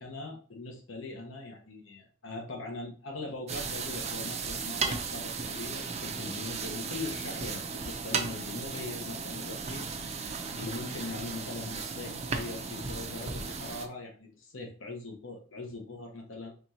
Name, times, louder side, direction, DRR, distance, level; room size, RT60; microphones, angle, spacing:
voice 1, 0.0-9.8 10.1-16.5, left 3 dB, 75° left, 2 dB, 1.1 m, -41 dB
sound 1, 3.5-13.9, right 4 dB, 35° right, 0.5 m, -36 dB
4.3 x 3.1 x 2.8 m, 0.41 s
head